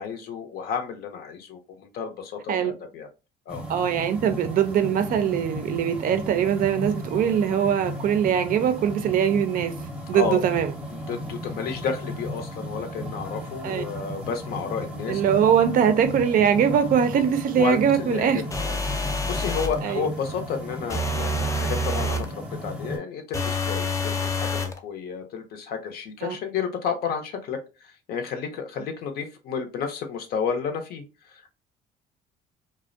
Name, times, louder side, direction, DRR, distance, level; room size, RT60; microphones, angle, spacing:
voice 1, 0.0-3.1 3.5-3.6 10.1-10.6 10.9-15.2 17.6-31.5, left 6 dB, 65° left, 0.6 m, -31 dB
sound 1, 3.5-23.0, equal, 5° right, 0.7 m, -35 dB
voice 2, 3.7-9.8 10.1-10.7 13.6-13.8 15.1-18.4 19.8-20.1 26.2-26.4, right 8 dB, 55° right, 0.4 m, -22 dB
sound 2, 18.5-19.8 20.9-22.3 23.3-24.8, left 1 dB, 20° left, 0.3 m, -27 dB
2.5 x 2.0 x 2.5 m
cardioid pair, 110°, 17 cm